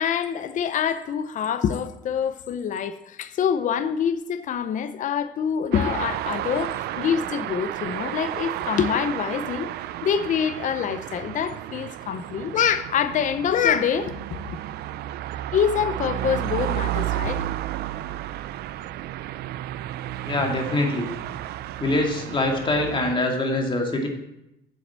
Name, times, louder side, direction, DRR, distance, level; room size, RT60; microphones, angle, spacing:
voice 1, 0.0-9.7 10.0-14.6 15.5-17.4, left 8 dB, 50° left, 0.7 m, -25 dB
sound 1, 5.7-23.1, right 14 dB, 70° right, 0.5 m, -32 dB
voice 2, 20.2-21.1 21.8-24.1, left 2 dB, 30° left, 2.4 m, -24 dB
7.9 x 7.8 x 7.4 m
cardioid pair, 110°, 17 cm